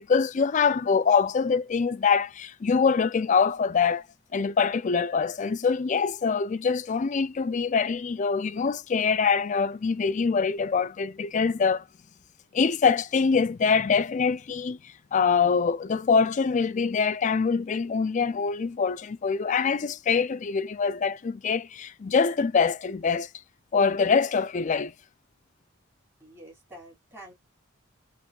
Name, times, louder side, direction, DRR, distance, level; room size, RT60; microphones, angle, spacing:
voice 1, 0.0-4.0 4.3-11.8 12.5-23.3 23.7-24.9, left 5 dB, 35° left, 0.3 m, -24 dB
voice 2, 26.2-27.3, right 1 dB, 10° right, 3.3 m, -47 dB
6.2 x 3.0 x 2.3 m
head